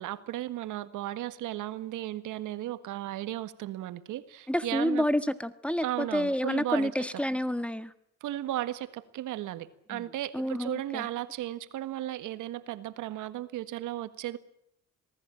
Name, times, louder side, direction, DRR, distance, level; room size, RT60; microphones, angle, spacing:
voice 1, 0.0-5.0 5.8-6.9 8.2-14.4, right 14 dB, 90° right, 13 dB, 1.7 m, -35 dB
voice 2, 4.5-7.9 9.9-10.0 10.3-11.1, equal, 5° left, 13 dB, 1.7 m, -29 dB
26.5 x 19.0 x 9.0 m, 0.74 s
cardioid pair, 90°, 30 cm